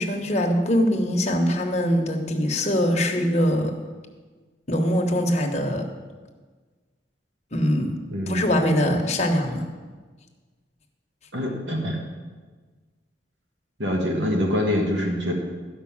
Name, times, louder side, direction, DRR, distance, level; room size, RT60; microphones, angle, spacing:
voice 1, 0.0-3.7 4.7-5.8 7.5-7.9 8.3-9.7, equal, 35° left, 2 dB, 1.2 m, -22 dB
voice 2, 8.1-9.0 11.3-12.0 13.8-15.3, equal, 80° right, 1 dB, 1.6 m, -25 dB
12.0 x 5.6 x 7.2 m, 1.4 s
head